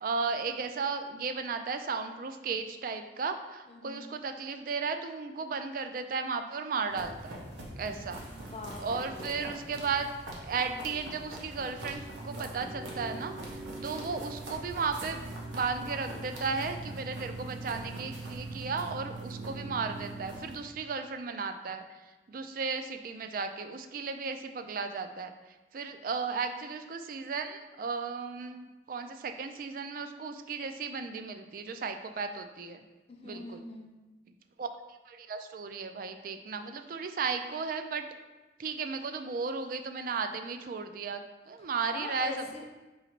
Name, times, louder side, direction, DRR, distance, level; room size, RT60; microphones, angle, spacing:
voice 1, 0.0-7.4 7.8-8.2 8.8-10.1 10.4-15.2 15.5-21.8 22.3-25.3 25.7-32.8 33.2-33.6 34.6-34.7 35.1-38.0 38.6-42.4, right 5 dB, 50° right, 7 dB, 0.3 m, -35 dB
voice 2, 3.7-4.0 8.2-9.5 33.1-33.9 41.9-42.6, left 2 dB, 35° left, 2 dB, 0.5 m, -43 dB
sound 1, 6.9-20.6, right 2 dB, 80° right, 0.9 m, -42 dB
4.0 x 2.9 x 4.4 m, 1.1 s
head